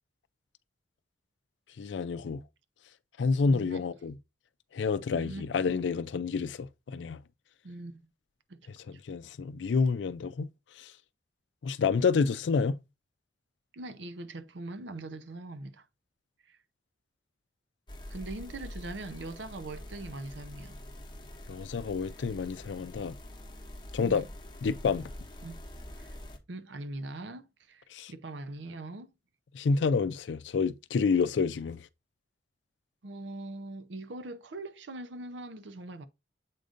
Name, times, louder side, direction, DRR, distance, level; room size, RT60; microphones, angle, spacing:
voice 1, 1.8-2.4 3.2-4.2 4.7-7.2 8.9-10.5 10.8-10.9 11.6-12.8 21.5-23.1 23.9-24.2 24.6-25.1 27.9-28.1 29.5-31.8, left 5 dB, 80° left, 0.4 m, -29 dB
voice 2, 3.5-3.8 5.1-5.5 7.6-8.0 8.5-9.0 13.7-15.9 16.4-16.6 18.1-20.8 24.0-24.3 25.4-25.6 26.0-26.2 26.5-29.1 33.0-36.1, right 2 dB, 80° right, 0.7 m, -42 dB
sound 1, 17.9-26.4, left 1 dB, 25° left, 1.0 m, -45 dB
7.5 x 2.5 x 5.0 m
head